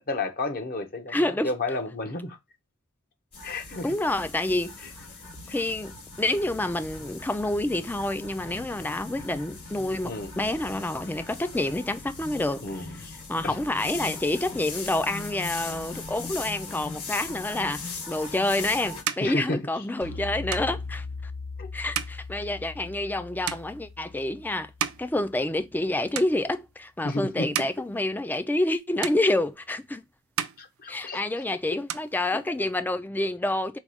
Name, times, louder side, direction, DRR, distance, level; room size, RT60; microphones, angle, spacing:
voice 1, 0.0-2.4 3.4-3.9 10.0-10.3 12.6-13.6 19.2-19.6 21.6-21.7 27.0-27.7 30.6-31.4 31.7-31.8, left 2 dB, 45° left, 0.8 m, -32 dB
voice 2, 1.1-1.5 3.8-4.7 5.5-12.6 13.3-21.3 21.7-24.7 25.0-30.0 30.9-33.8, left 1 dB, 10° left, 0.3 m, -28 dB
sound 1, 3.3-19.0, left 3 dB, 90° left, 3.1 m, -39 dB
sound 2, 18.2-25.9 26.1-26.8 27.3-28.7 29.0-29.9 30.2-31.4 31.7-32.8, right 10 dB, 70° right, 0.4 m, -36 dB
sound 3, 20.0-25.4, left 3 dB, 70° left, 0.9 m, -39 dB
4.6 x 2.3 x 4.0 m
head